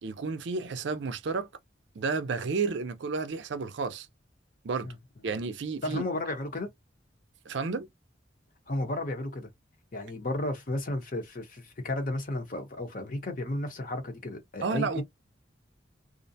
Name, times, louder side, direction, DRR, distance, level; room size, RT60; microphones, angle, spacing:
voice 1, 0.0-1.5 2.0-4.1 4.6-4.9 5.2-6.0 7.5-7.9 14.6-15.0, right 4 dB, 65° right, 0.4 m, -31 dB
voice 2, 5.8-6.7 8.7-9.5 9.9-15.0, left 1 dB, 45° left, 0.8 m, -33 dB
2.5 x 2.1 x 2.6 m
head